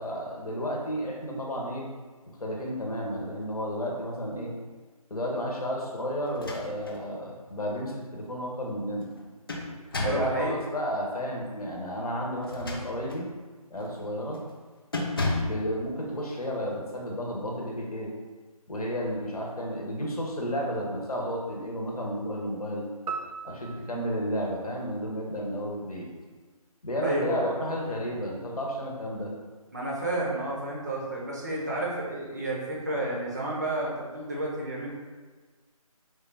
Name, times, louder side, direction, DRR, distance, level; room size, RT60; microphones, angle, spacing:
voice 1, 0.0-1.8 2.4-4.5 5.1-9.1 10.0-13.3 13.7-14.4 15.4-18.1 18.7-22.9 23.4-26.1 26.8-29.3, equal, 75° left, -2 dB, 0.9 m, -32 dB
sound 1, 6.3-7.0 7.5-7.6 9.0-10.4 12.4-13.3 13.8-14.0 14.3-14.6 14.9-15.6, left 2 dB, 40° left, 0.4 m, -32 dB
voice 2, 10.0-10.5 27.0-27.5 29.7-34.9, right 1 dB, 30° right, -4 dB, 0.5 m, -31 dB
sound 2, 23.1-25.5, right 5 dB, 80° right, 0.4 m, -40 dB
3.3 x 2.3 x 3.3 m, 1.4 s
figure-of-eight pair, 160°, 19 cm